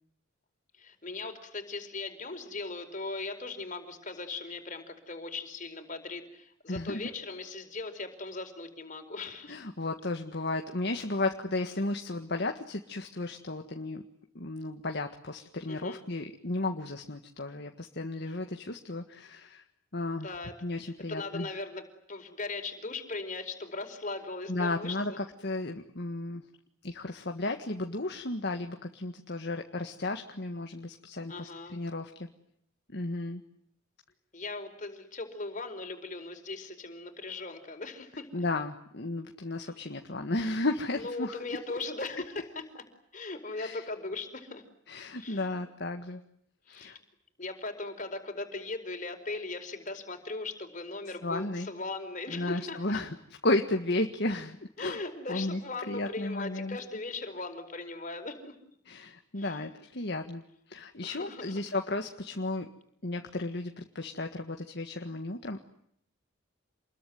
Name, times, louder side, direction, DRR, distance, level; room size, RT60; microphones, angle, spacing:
voice 1, 0.8-9.6 15.7-16.0 20.1-20.6 20.8-25.2 31.3-31.8 34.3-38.4 40.9-42.8 43.1-44.6 45.1-45.6 46.7-47.0 47.4-53.0 54.8-58.6 59.4-59.7 61.0-61.8, left 3 dB, 40° left, 5 dB, 4.8 m, -39 dB
voice 2, 6.7-7.1 9.5-14.0 14.3-19.6 19.9-20.3 20.6-21.5 24.5-26.4 26.8-32.3 32.9-33.4 38.3-41.4 43.6-43.8 44.9-46.2 46.7-47.0 51.2-51.7 52.3-53.1 53.4-55.0 55.3-55.6 55.9-56.8 58.8-60.4 60.7-62.7 63.0-65.6, left 2 dB, 55° left, 5 dB, 1.7 m, -34 dB
28.0 x 21.5 x 9.4 m, 0.71 s
head